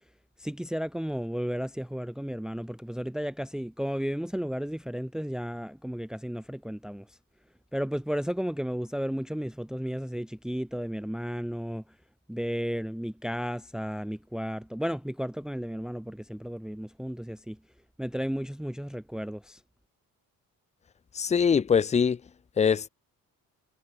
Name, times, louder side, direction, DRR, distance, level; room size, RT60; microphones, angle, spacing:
voice 1, 0.4-7.1 7.7-11.8 12.3-17.6 18.0-19.6, equal, ahead, 1.1 m, -33 dB
voice 2, 21.2-22.2 22.6-22.9, left 6 dB, 20° left, 0.5 m, -23 dB
cardioid pair, 105°, 35 cm